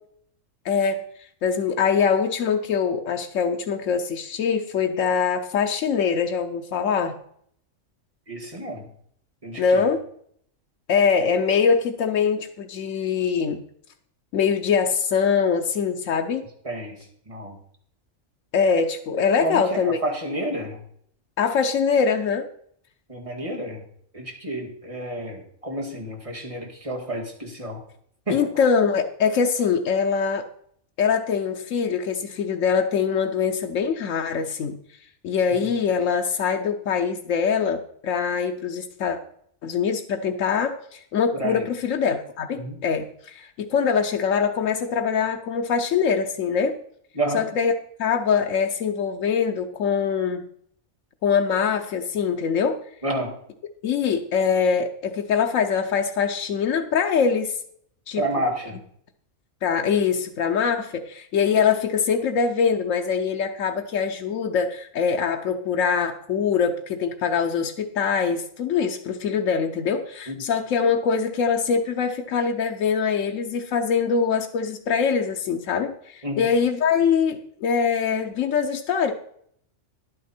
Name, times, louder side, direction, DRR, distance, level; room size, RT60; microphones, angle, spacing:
voice 1, 0.6-1.0 1.4-7.1 9.6-10.0 10.9-13.6 14.3-16.5 18.5-20.0 21.4-22.5 28.3-30.4 31.0-34.8 35.2-39.2 39.6-46.8 47.3-47.7 48.0-50.4 51.2-52.8 53.8-57.5 58.1-58.2 59.6-79.1, left 6 dB, 90° left, 4 dB, 1.2 m, -23 dB
voice 2, 8.3-8.9 9.4-9.8 16.6-17.0 17.3-17.6 19.4-20.8 23.1-23.8 24.1-27.8 28.3-28.4 41.3-41.7 42.6-42.8 47.1-47.4 53.0-53.4 58.1-58.8 70.3-70.4 76.2-76.5, right 1 dB, 25° right, 0 dB, 2.2 m, -30 dB
11.0 x 9.3 x 4.4 m, 0.65 s
omnidirectional pair, 1.3 m